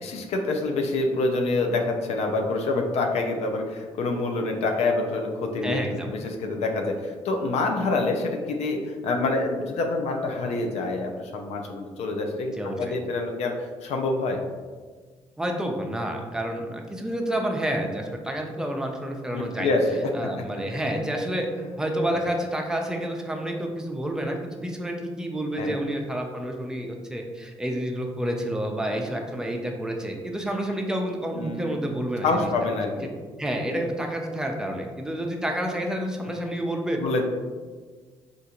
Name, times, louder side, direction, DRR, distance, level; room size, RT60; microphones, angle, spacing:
voice 1, 0.0-14.4 19.3-20.1 25.6-25.8 31.3-31.7 32.2-33.1 37.0-37.3, left 3 dB, 80° left, 2 dB, 0.4 m, -26 dB
voice 2, 5.6-6.1 12.6-13.0 15.4-19.7 20.1-21.5 21.8-32.5 33.4-37.0, right 1 dB, 5° right, 1 dB, 0.5 m, -29 dB
3.6 x 2.5 x 2.8 m, 1.5 s
cardioid pair, 85°, 11 cm